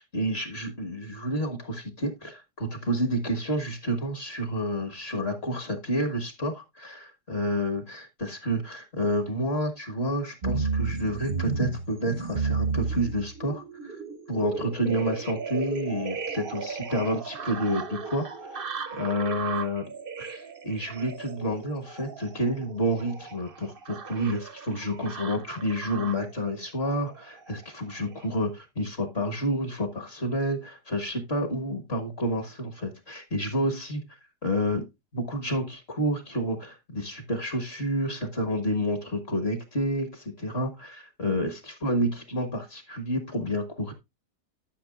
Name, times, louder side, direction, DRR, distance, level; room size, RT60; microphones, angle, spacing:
voice 1, 0.0-14.0 14.3-19.8 20.2-34.0 34.4-34.8 35.1-43.9, equal, 40° left, 1.6 m, -29 dB
sound 1, 10.4-26.3 27.0-27.6 28.1-28.2, right 4 dB, 40° right, 0.8 m, -34 dB
12.5 x 6.3 x 2.4 m
omnidirectional pair, 1.8 m